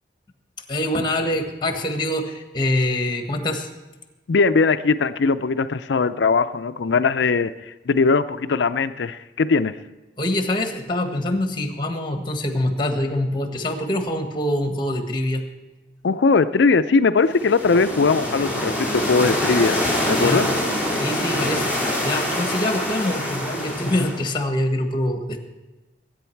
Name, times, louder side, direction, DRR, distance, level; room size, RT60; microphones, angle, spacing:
voice 1, 0.7-3.7 10.2-15.5 20.1-20.5 20.9-25.4, left 1 dB, 25° left, 5 dB, 1.5 m, -25 dB
voice 2, 4.3-9.7 16.0-19.8 20.1-20.5, left 4 dB, 75° left, 12 dB, 0.5 m, -20 dB
sound 1, 17.3-24.4, left 1 dB, 10° right, 3.2 m, -25 dB
20.5 x 9.2 x 4.5 m, 1.1 s
head